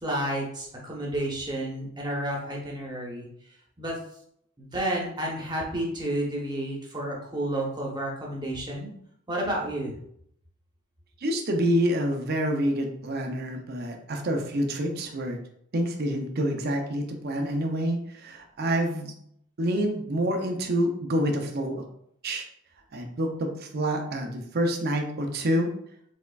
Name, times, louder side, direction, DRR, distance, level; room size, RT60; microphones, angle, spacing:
voice 1, 0.0-3.3 3.8-4.0 4.6-8.9 9.3-9.9, right 1 dB, 20° right, -2 dB, 1.0 m, -31 dB
voice 2, 11.2-15.4 15.7-19.1 19.6-21.8 22.2-22.4 22.9-25.7, equal, 45° right, 3 dB, 0.6 m, -27 dB
5.2 x 3.7 x 2.4 m, 0.70 s
head